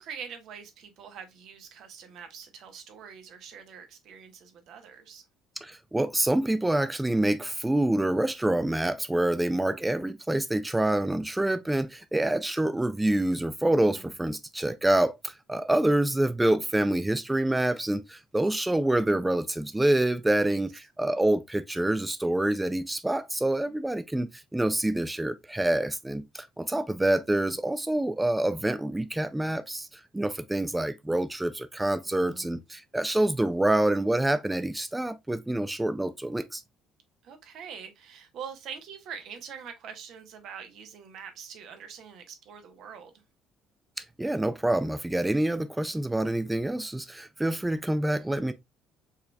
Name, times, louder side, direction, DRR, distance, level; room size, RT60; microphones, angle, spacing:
voice 1, 0.0-5.2 13.9-14.1 20.3-20.6 21.0-21.3 32.0-32.5 37.2-43.1, right 7 dB, 60° right, 1.0 m, -44 dB
voice 2, 5.6-36.6 44.0-48.5, right 1 dB, 10° right, 0.4 m, -27 dB
4.7 x 3.2 x 2.2 m
hypercardioid pair, 60°, 0 cm